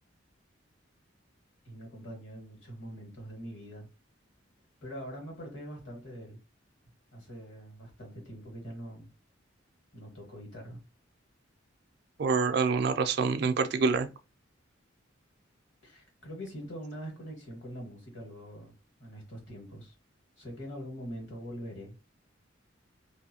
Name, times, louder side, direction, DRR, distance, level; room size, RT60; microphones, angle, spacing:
voice 1, 1.6-3.9 4.8-6.4 7.1-9.1 9.9-10.8 15.8-18.7 19.0-19.9 20.4-21.9, equal, 70° left, 1.6 m, -43 dB
voice 2, 12.2-14.1, right 4 dB, 55° right, 0.3 m, -26 dB
2.7 x 2.5 x 2.7 m
head